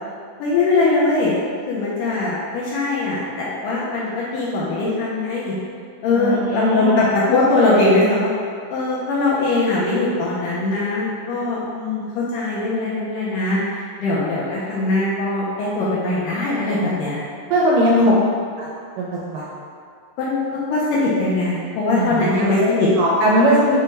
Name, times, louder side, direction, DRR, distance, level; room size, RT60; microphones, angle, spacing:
voice 1, 0.4-1.4 1.7-5.6 6.0-8.3 8.7-17.2 17.9-18.3 20.2-22.9, left 2 dB, 80° left, -7 dB, 2.0 m, -21 dB
voice 2, 6.2-7.1 16.5-17.0 17.5-18.2 18.6-18.7 19.0-19.5 21.9-22.7 23.0-23.8, right 1 dB, 80° right, -5 dB, 1.9 m, -20 dB
6.2 x 2.2 x 3.2 m, 2.2 s
omnidirectional pair, 4.2 m